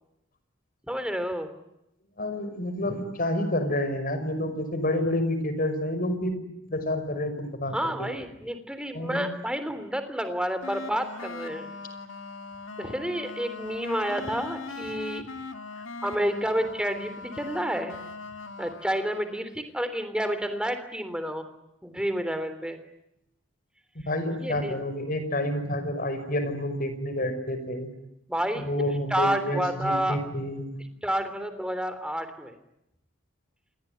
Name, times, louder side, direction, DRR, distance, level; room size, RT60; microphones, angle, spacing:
voice 1, 0.9-1.5 7.7-11.7 12.8-15.2 15.7-17.9 18.6-21.5 21.8-22.8 24.4-24.8 28.3-28.7 29.1-30.2 31.0-32.5, equal, 5° right, 9 dB, 3.3 m, -29 dB
voice 2, 2.2-6.4 6.6-8.1 8.9-9.3 24.1-27.9 28.6-30.7, left 1 dB, 45° left, 9 dB, 5.6 m, -29 dB
sound 1, 10.6-19.4, left 3 dB, 80° left, 2.1 m, -40 dB
28.0 x 22.5 x 9.4 m, 0.83 s
head